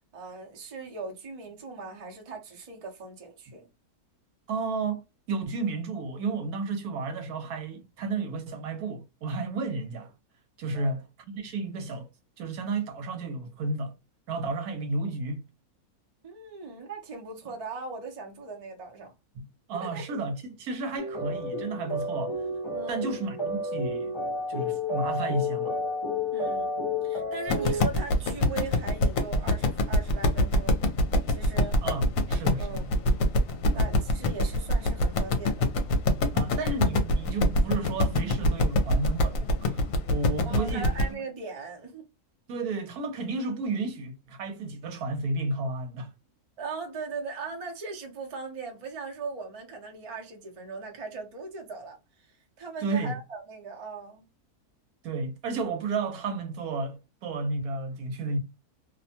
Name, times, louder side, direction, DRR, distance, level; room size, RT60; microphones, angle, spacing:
voice 1, 0.1-3.7 10.7-10.9 16.2-19.1 19.8-20.2 22.7-23.1 26.3-26.7 27.0-30.8 31.3-31.8 32.6-32.9 33.7-35.7 40.4-42.1 46.6-54.2, right 4 dB, 35° right, 0.6 m, -39 dB
voice 2, 4.5-10.1 10.6-12.1 12.4-14.0 14.3-15.4 19.3-22.4 22.9-24.1 24.5-25.8 31.8-32.8 33.7-33.8 36.3-40.9 42.5-46.1 52.8-53.2 55.0-58.4, right 3 dB, 80° right, 1.2 m, -32 dB
sound 1, 21.0-27.8, left 2 dB, 30° left, 0.6 m, -31 dB
sound 2, 27.5-41.1, left 1 dB, 70° left, 1.0 m, -24 dB
2.7 x 2.2 x 2.7 m
omnidirectional pair, 1.6 m